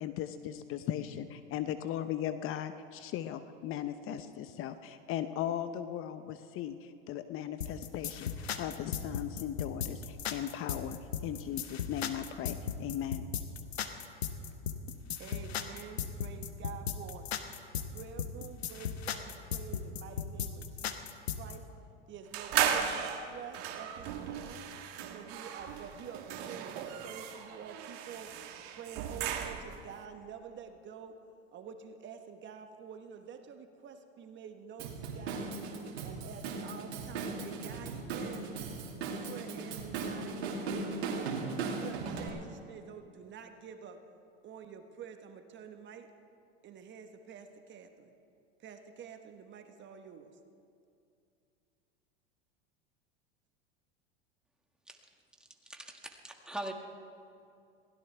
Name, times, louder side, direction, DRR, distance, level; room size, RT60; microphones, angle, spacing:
voice 1, 0.0-13.3, left 11 dB, 45° left, 10 dB, 0.8 m, -38 dB
sound 1, 7.6-21.6, left 8 dB, 90° left, 1.1 m, -36 dB
voice 2, 15.2-17.3 17.7-21.7 22.1-24.6 25.1-28.3 28.7-31.2 31.5-35.5 36.0-38.5 39.0-41.4 41.8-44.0 44.4-46.1 46.6-48.1 48.6-50.3, right 7 dB, 35° right, 6 dB, 1.3 m, -48 dB
sound 2, 22.3-29.9, right 9 dB, 55° right, 1.7 m, -36 dB
Drum kit / Drum, 34.8-42.3, right 4 dB, 75° right, 2.6 m, -38 dB
voice 3, 55.7-56.7, right 1 dB, 5° right, 2 dB, 1.9 m, -41 dB
22.0 x 16.5 x 3.4 m, 2.5 s
hypercardioid pair, 100°, 31 cm